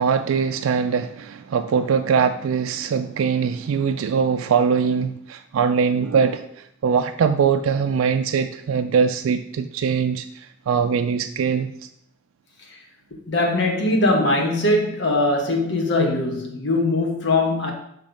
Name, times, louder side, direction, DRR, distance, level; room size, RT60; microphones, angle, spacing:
voice 1, 0.0-6.5 6.8-10.3 10.7-11.7, right 6 dB, 85° right, 0.3 m, -21 dB
voice 2, 13.1-17.7, left 2 dB, 60° left, 1.1 m, -21 dB
6.8 x 3.2 x 5.1 m
head